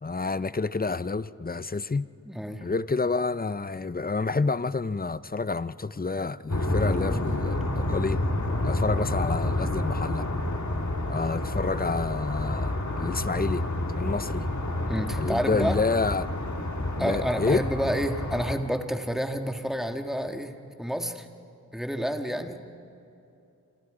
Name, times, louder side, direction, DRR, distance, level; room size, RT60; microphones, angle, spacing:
voice 1, 0.0-2.1 2.6-8.2 8.6-10.3 11.1-13.7 14.0-14.5 15.2-16.3 17.0-17.6, left 4 dB, 25° left, 16 dB, 0.5 m, -29 dB
voice 2, 2.3-2.7 14.8-15.8 17.0-21.3 21.7-22.6, equal, ahead, 5 dB, 1.6 m, -29 dB
sound 1, 6.5-18.6, left 1 dB, 50° left, 2.2 m, -29 dB
27.5 x 27.5 x 5.0 m, 2.7 s
wide cardioid pair, 60°, 38 cm